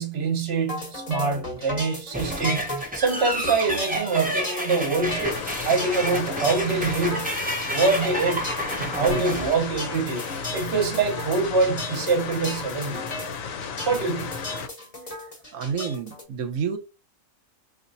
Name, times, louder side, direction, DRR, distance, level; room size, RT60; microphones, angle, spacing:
voice 1, 0.0-2.7 2.9-5.3 5.6-7.3 7.7-8.5 8.8-10.2 10.5-13.1 13.9-14.4, right 4 dB, 50° right, 1.1 m, -25 dB
sound 1, 0.7-16.2, left 1 dB, 30° left, 1.1 m, -36 dB
sound 2, 2.1-10.5, equal, 15° right, 0.3 m, -30 dB
sound 3, 5.2-14.7, left 6 dB, 75° left, 1.0 m, -34 dB
voice 2, 15.5-16.8, right 6 dB, 75° right, 1.0 m, -29 dB
4.2 x 2.6 x 2.6 m
omnidirectional pair, 1.4 m